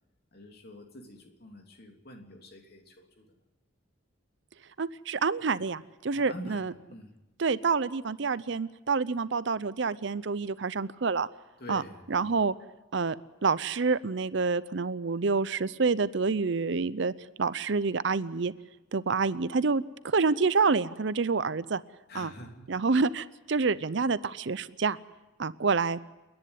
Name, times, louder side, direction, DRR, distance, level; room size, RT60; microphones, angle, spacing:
voice 1, 0.3-3.2 6.1-7.2 11.6-12.3 22.1-22.7, equal, 50° left, 3 dB, 3.0 m, -46 dB
voice 2, 4.8-6.7 7.4-11.3 11.7-11.8 12.1-12.5 12.9-13.2 13.4-17.1 17.4-18.5 18.9-21.8 22.1-22.3 22.7-25.0 25.4-26.0, right 4 dB, 60° right, 17 dB, 0.6 m, -27 dB
30.0 x 10.5 x 9.6 m, 1.1 s
head